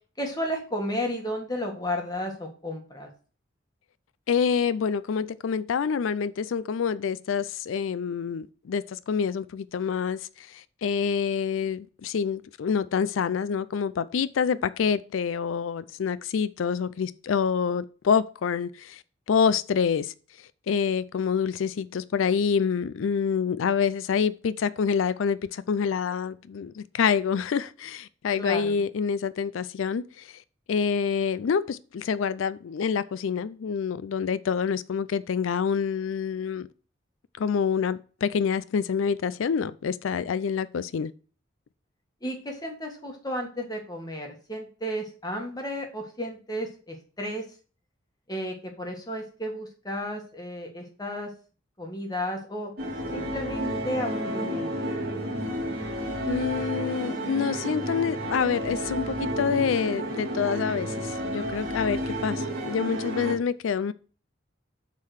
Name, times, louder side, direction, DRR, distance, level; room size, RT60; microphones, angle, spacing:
voice 1, 0.2-3.1 28.4-28.8 42.2-47.4 48.3-51.3 51.8-52.7 53.1-54.9, equal, 20° left, 1.6 m, -33 dB
voice 2, 4.3-19.0 19.3-20.1 20.7-30.4 30.7-36.7 37.4-41.1 56.2-63.9, left 6 dB, 90° left, 0.4 m, -27 dB
sound 1, 52.8-63.4, equal, 50° right, 2.4 m, -31 dB
7.5 x 3.8 x 6.3 m
head